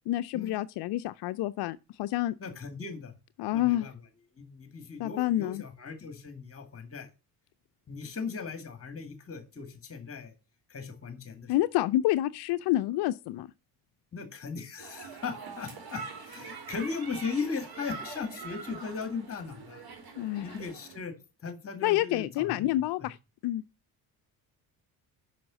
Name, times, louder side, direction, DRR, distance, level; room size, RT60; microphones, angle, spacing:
voice 1, 0.1-2.3 3.4-3.9 5.0-5.6 11.5-13.5 20.2-20.6 21.8-23.2 23.4-23.6, left 15 dB, 60° left, 0.5 m, -28 dB
voice 2, 2.4-3.1 3.5-3.9 4.4-7.1 7.9-10.3 10.7-11.5 14.1-19.8 20.4-22.7, left 5 dB, 30° left, 2.0 m, -38 dB
sound 1, 14.8-21.0, right 5 dB, 50° right, 3.2 m, -44 dB
6.0 x 5.7 x 6.2 m
supercardioid pair, 65°, 46 cm